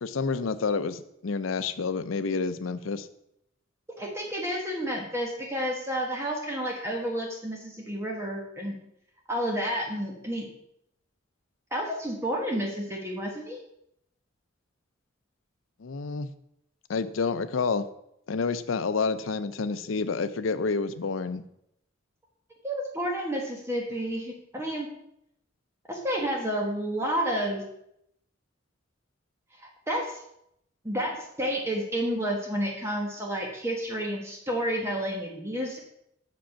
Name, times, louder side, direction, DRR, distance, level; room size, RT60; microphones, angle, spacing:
voice 1, 0.0-3.1 15.8-16.3 16.9-17.9 18.3-21.4, left 4 dB, 85° left, 12 dB, 0.5 m, -29 dB
voice 2, 4.0-8.8 9.3-10.5 11.7-13.6 22.6-24.9 25.9-27.6 29.9-30.2 30.8-35.8, equal, 15° right, -1 dB, 1.2 m, -30 dB
6.9 x 5.2 x 5.7 m, 0.77 s
head